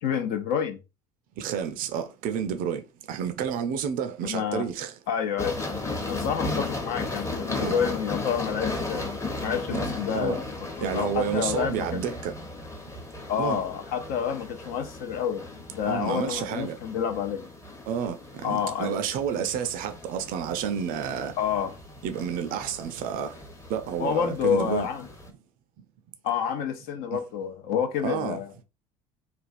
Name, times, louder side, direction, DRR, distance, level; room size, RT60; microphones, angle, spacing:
voice 1, 0.0-0.8 4.2-4.7 5.1-5.5 6.1-9.0 9.4-10.4 10.8-12.0 13.3-17.5 18.4-19.0 21.4-21.7 24.0-25.1 26.2-28.5, left 8 dB, 55° left, 0.7 m, -28 dB
voice 2, 1.4-2.8 3.1-4.9 6.5-6.7 7.4-7.8 9.7-9.8 10.1-10.4 10.8-12.3 13.4-13.6 15.9-16.8 17.9-21.3 22.0-23.3 23.7-24.9 27.1-27.2 28.0-28.4, right 8 dB, 50° right, 0.5 m, -30 dB
sound 1, 5.4-25.3, left 3 dB, 15° left, 0.9 m, -36 dB
3.3 x 2.3 x 2.5 m
figure-of-eight pair, 60°, 19 cm